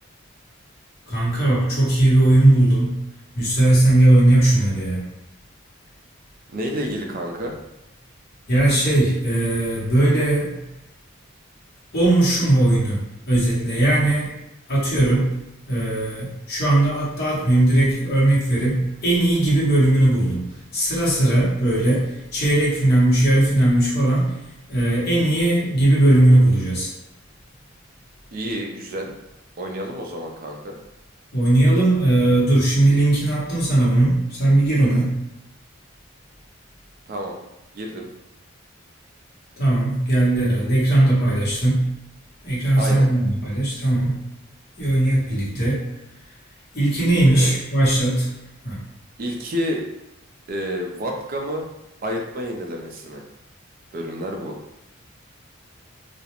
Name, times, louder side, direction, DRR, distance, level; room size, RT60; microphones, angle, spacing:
voice 1, 1.1-3.0 3.3-5.0 8.5-10.6 11.9-13.0 13.3-14.3 14.7-15.3 15.7-20.5 20.7-24.4 24.7-26.9 31.3-35.2 39.6-41.9 42.4-44.2 44.8-45.8 46.7-48.3 48.6-48.8, right 1 dB, 50° left, -8 dB, 0.9 m, -18 dB
voice 2, 6.5-7.6 28.3-29.1 29.6-30.8 37.1-37.4 37.7-38.1 42.8-43.1 47.3-47.5 49.2-49.8 50.5-51.7 52.0-53.2 53.9-54.6, equal, 45° right, 1 dB, 0.4 m, -29 dB
2.4 x 2.0 x 2.9 m, 0.91 s
head